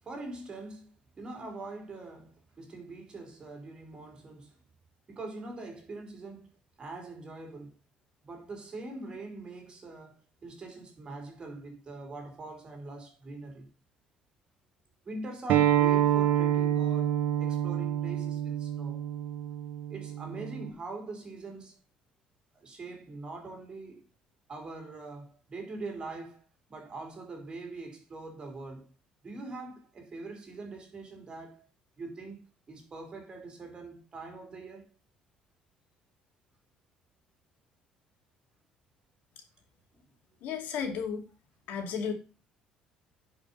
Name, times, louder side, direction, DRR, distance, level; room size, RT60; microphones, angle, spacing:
voice 1, 0.0-4.6 5.1-6.5 6.8-7.8 8.2-13.7 15.0-19.0 19.9-21.8 22.5-24.0 24.5-28.9 29.2-31.7 32.0-34.8 39.9-40.0, right 3 dB, 30° right, 4.1 m, -43 dB
Acoustic guitar, 15.5-20.7, right 11 dB, 75° right, 1.3 m, -27 dB
voice 2, 40.4-41.3 41.7-42.1, left 6 dB, 75° left, 2.7 m, -33 dB
10.5 x 5.8 x 5.4 m
cardioid pair, 125°, 3 cm